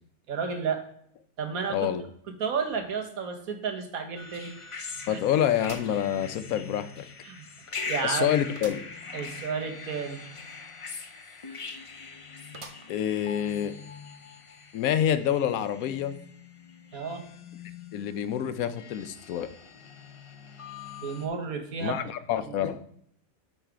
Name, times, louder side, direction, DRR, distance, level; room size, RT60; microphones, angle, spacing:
voice 1, 0.3-0.8 1.4-1.9 2.4-4.5 5.1-5.2 7.2-7.5 7.8-8.3 9.1-10.2 16.9-17.2 21.0-22.0 22.5-22.6, right 6 dB, 90° right, 5 dB, 1.6 m, -32 dB
voice 2, 1.7-2.0 5.1-7.0 8.0-8.8 12.9-13.7 14.7-16.2 17.9-19.5 21.8-22.8, left 10 dB, 80° left, 12 dB, 1.1 m, -27 dB
sound 1, 3.4-3.5 3.9-4.0 5.6-6.7 7.2-7.3 8.5-9.0 9.4-9.5 9.7-9.8 12.5-13.2 13.7-13.8 14.8-14.9, right 3 dB, 35° right, 0.5 m, -47 dB
sound 2, 4.2-21.3, left 5 dB, 50° left, 0.4 m, -42 dB
8.7 x 4.1 x 4.6 m, 0.66 s
omnidirectional pair, 1.5 m